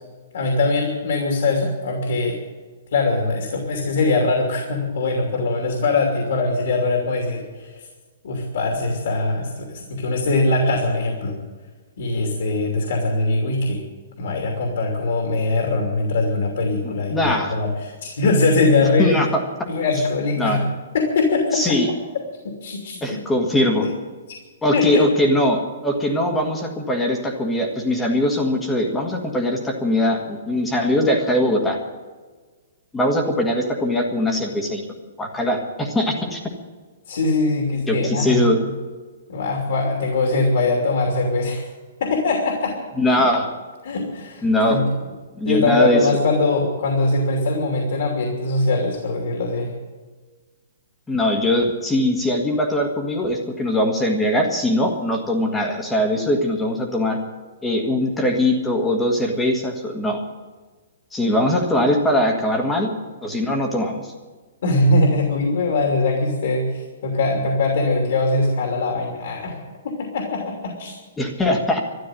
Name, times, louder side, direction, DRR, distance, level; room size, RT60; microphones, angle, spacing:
voice 1, 0.3-2.4 2.9-7.9 8.2-11.4 12.0-13.8 14.2-19.2 19.7-20.6 20.9-21.8 22.4-23.0 23.8-23.9 24.7-25.0 37.1-38.5 39.3-41.6 42.0-42.8 43.1-43.2 43.8-44.9 45.4-49.7 64.6-69.6 69.8-71.0, left 2 dB, 55° left, 2 dB, 2.9 m, -22 dB
voice 2, 16.8-17.6 19.0-19.3 20.4-20.7 21.5-21.9 23.0-23.9 24.6-31.8 32.9-34.8 35.2-36.4 37.9-38.6 43.0-43.5 44.4-44.8 45.4-46.0 51.1-57.2 57.6-60.2 61.1-62.9 63.2-64.1 71.2-71.8, left 1 dB, 5° left, 2 dB, 1.6 m, -21 dB
13.0 x 11.5 x 9.1 m, 1.4 s
hypercardioid pair, 175°, 0 cm